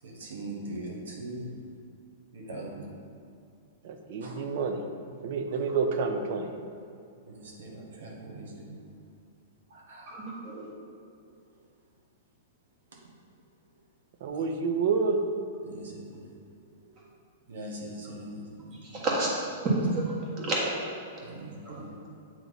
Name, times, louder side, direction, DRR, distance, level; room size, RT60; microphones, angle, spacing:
voice 1, 0.0-1.5 2.3-2.8 4.2-4.3 7.3-8.7 9.7-10.2 14.3-14.4 15.6-16.3 17.5-19.0 21.2-21.9, right 1 dB, 85° right, -1 dB, 1.1 m, -41 dB
voice 2, 3.8-4.8 5.2-6.5 14.2-15.2, right 5 dB, 55° right, 5 dB, 0.6 m, -28 dB
voice 3, 10.1-10.6 19.0-19.3 19.9-20.6 21.6-22.1, right 2 dB, 30° right, -4 dB, 1.5 m, -31 dB
8.1 x 3.0 x 4.0 m, 2.4 s
hypercardioid pair, 150°, 0 cm